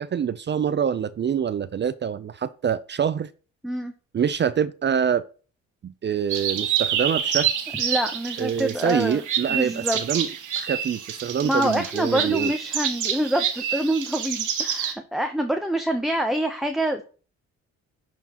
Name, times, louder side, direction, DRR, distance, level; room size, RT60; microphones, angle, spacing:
voice 1, 0.0-3.3 4.1-5.2 5.8-7.7 8.4-10.3 10.6-12.5, right 8 dB, 35° right, 0.5 m, -25 dB
sound 1, 6.3-14.9, right 9 dB, 70° right, 1.3 m, -28 dB
voice 2, 7.8-9.2 9.5-10.0 11.4-17.0, right 1 dB, ahead, 0.7 m, -26 dB
11.0 x 4.4 x 2.9 m
cardioid pair, 75°, 32 cm